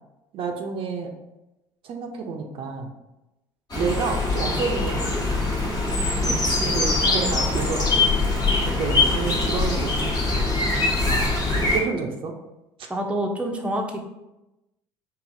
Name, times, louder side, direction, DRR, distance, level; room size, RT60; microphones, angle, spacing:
voice 1, 0.3-1.1 1.8-2.9 3.8-5.3 6.2-6.5 6.7-8.1 8.6-10.5 11.0-12.3, right 5 dB, 55° right, 2 dB, 0.6 m, -30 dB
sound 1, 3.7-11.8, left 3 dB, 35° left, 1.2 m, -23 dB
voice 2, 6.3-7.4 12.9-14.0, right 1 dB, 10° right, 1 dB, 0.6 m, -29 dB
4.6 x 2.6 x 2.6 m, 0.96 s
hypercardioid pair, 75°, 11 cm